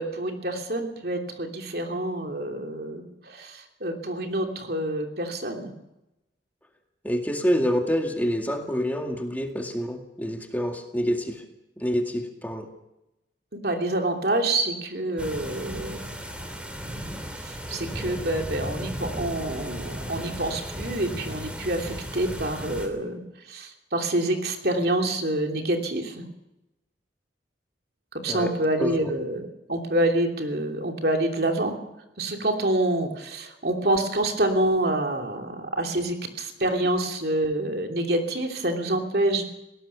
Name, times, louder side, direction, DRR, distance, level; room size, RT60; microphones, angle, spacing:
voice 1, 0.0-5.7 13.5-16.1 17.4-23.2 23.5-26.2 28.1-31.7 32.2-39.4, right 1 dB, 60° right, 3 dB, 3.0 m, -27 dB
voice 2, 7.0-11.4 11.8-12.7 28.3-28.5 28.8-28.9, equal, 10° left, 3 dB, 2.1 m, -27 dB
sound 1, 15.2-22.9, equal, 5° right, 3.1 m, -35 dB
21.0 x 18.0 x 7.0 m, 0.90 s
head